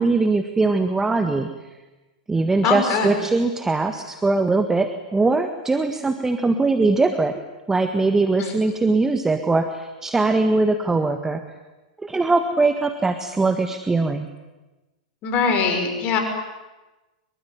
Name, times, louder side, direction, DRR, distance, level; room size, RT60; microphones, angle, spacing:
voice 1, 0.0-1.5 2.3-7.4 7.7-11.4 12.0-14.3, right 3 dB, 10° right, 8 dB, 1.7 m, -21 dB
voice 2, 2.6-3.1 8.4-8.5 15.2-16.2, left 5 dB, 40° left, 5 dB, 6.0 m, -22 dB
24.5 x 23.5 x 9.6 m, 1.1 s
hypercardioid pair, 105°, 4 cm